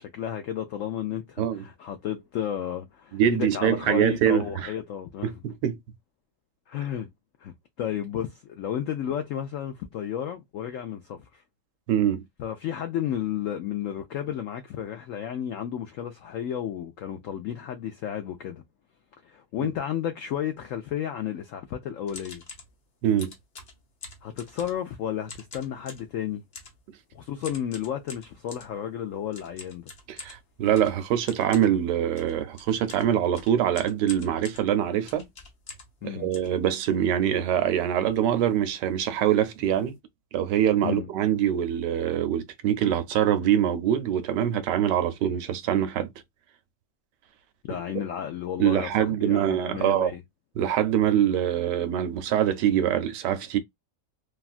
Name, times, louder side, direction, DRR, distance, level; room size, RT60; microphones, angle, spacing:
voice 1, 0.0-5.3 6.7-7.1 7.4-11.4 12.4-18.6 19.2-22.4 24.2-26.4 27.1-29.9 36.0-36.3 40.8-41.1 47.6-50.2, left 10 dB, 85° left, 0.7 m, -32 dB
voice 2, 3.1-4.7 5.2-5.8 11.9-12.2 19.6-19.7 23.0-23.3 30.1-35.3 36.0-39.9 40.3-46.1 48.6-50.1 50.6-53.6, right 10 dB, 75° right, 1.2 m, -24 dB
sound 1, 22.1-22.7 23.2-24.9 25.3-26.1 26.5-26.8 27.4-28.7 29.3-36.0 36.3-37.2 37.7-37.8 37.9-38.2 38.5-38.7 39.3-39.4 39.6-39.9, left 3 dB, 45° left, 0.9 m, -45 dB
3.4 x 2.3 x 2.4 m
omnidirectional pair, 1.9 m